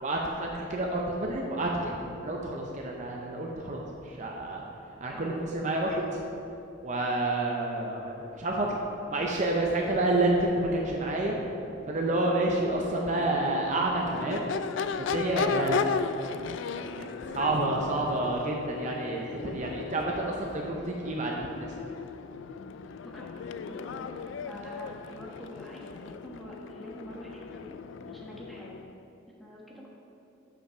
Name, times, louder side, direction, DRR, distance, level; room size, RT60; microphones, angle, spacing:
voice 1, 0.0-1.9 2.2-4.6 5.0-6.2 6.8-8.8 9.1-11.4 11.9-14.5 14.9-15.8 16.7-21.7, right 2 dB, 40° right, -1 dB, 0.6 m, -29 dB
voice 2, 1.7-2.1 5.1-5.4 11.3-11.4 23.1-23.3 23.7-24.1 24.4-27.8 28.0-28.7 29.4-29.9, equal, ahead, -4 dB, 1.3 m, -45 dB
Crowd / Race car auto racing / Accelerating revving vroom, 11.9-29.0, left 5 dB, 65° left, 0.3 m, -36 dB
7.6 x 5.7 x 5.6 m, 2.9 s
head